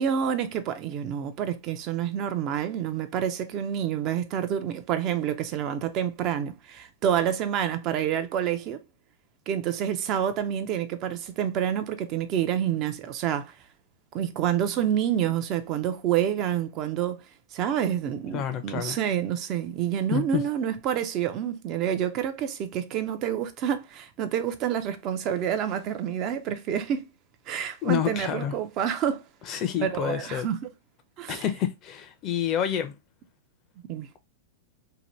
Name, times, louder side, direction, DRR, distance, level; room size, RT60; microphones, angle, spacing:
voice 1, 0.0-8.8 9.5-13.6 14.1-17.2 17.5-27.1 27.5-30.7 31.2-31.4 33.9-34.1, right 9 dB, 40° right, 0.5 m, -28 dB
voice 2, 18.3-19.0 20.1-20.4 27.8-28.5 29.5-30.5 31.3-32.9, left 9 dB, 35° left, 0.5 m, -28 dB
2.8 x 2.2 x 3.0 m
hypercardioid pair, 125°, 0 cm